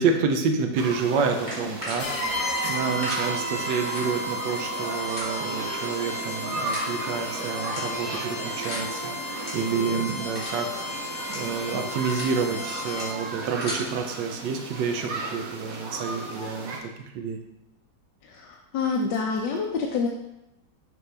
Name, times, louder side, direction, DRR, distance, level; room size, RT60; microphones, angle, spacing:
voice 1, 0.0-16.9 17.1-17.4, right 5 dB, 90° right, 5 dB, 1.4 m, -29 dB
sound 1, 0.7-16.8, right 2 dB, 60° right, 1.2 m, -35 dB
sound 2, 1.3-2.0 2.5-3.2 3.8-4.0 4.4-4.6 5.1-5.2 6.1-6.3 6.7-6.9 7.6-8.1 8.6-8.8 9.3-9.5 9.9-10.0 10.3-10.6 11.2-11.4 11.8-12.3 12.8-13.0 13.4-13.8, left 1 dB, 25° left, 2.0 m, -36 dB
sound 3, 2.0-13.4, left 1 dB, 60° left, 2.0 m, -33 dB
voice 2, 18.2-20.1, left 5 dB, 80° left, 0 dB, 1.3 m, -27 dB
6.8 x 4.6 x 3.3 m, 0.88 s
omnidirectional pair, 1.9 m